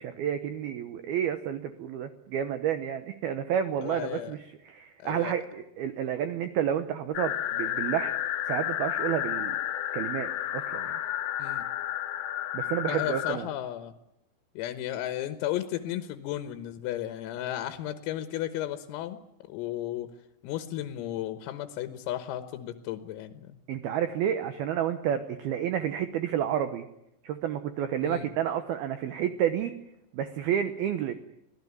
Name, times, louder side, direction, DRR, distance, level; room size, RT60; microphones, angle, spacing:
voice 1, 0.0-8.1 8.5-9.6 9.9-11.0 12.5-13.5 23.7-26.9 27.2-29.7 30.1-31.1, right 9 dB, 85° right, 10 dB, 2.2 m, -30 dB
voice 2, 3.8-4.4 5.0-5.3 11.4-11.7 12.9-13.9 14.6-19.2 19.5-20.1 20.4-23.6 28.0-28.3, left 12 dB, 90° left, 10 dB, 3.9 m, -34 dB
sound 1, 7.1-13.3, left 12 dB, 70° left, 3.7 m, -31 dB
25.5 x 17.5 x 9.6 m, 0.84 s
omnidirectional pair, 5.9 m